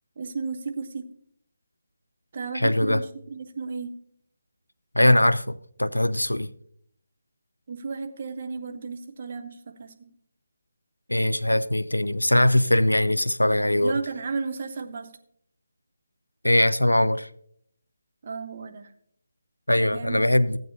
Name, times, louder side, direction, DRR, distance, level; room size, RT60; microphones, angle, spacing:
voice 1, 0.2-1.1 2.3-4.0 7.7-10.1 13.8-15.1 18.2-18.9 19.7-20.3, right 4 dB, 35° right, 0.8 m, -33 dB
voice 2, 2.5-3.0 4.9-6.5 11.1-14.0 16.4-17.3 19.7-20.6, left 1 dB, 80° left, 0.4 m, -21 dB
15.5 x 8.5 x 2.8 m
figure-of-eight pair, 150°, 0 cm